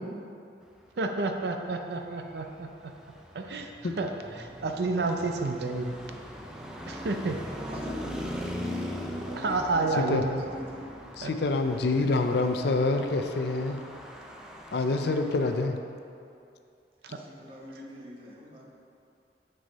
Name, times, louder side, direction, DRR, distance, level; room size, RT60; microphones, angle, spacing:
voice 1, 1.0-2.7 3.3-3.7 4.0-4.1 4.4-6.0 6.9-7.4 9.4-10.4 11.2-11.3 17.0-17.2, right 3 dB, 70° right, 4 dB, 0.5 m, -30 dB
Traffic noise roadway noise, 2.0-15.7, equal, 5° right, 0.5 m, -40 dB
voice 2, 7.6-8.5 9.2-10.9 17.1-18.7, equal, 30° right, -4 dB, 1.3 m, -44 dB
voice 3, 11.2-13.8 14.7-15.8, left 3 dB, 65° left, 6 dB, 0.5 m, -26 dB
6.9 x 6.3 x 4.1 m, 2.5 s
head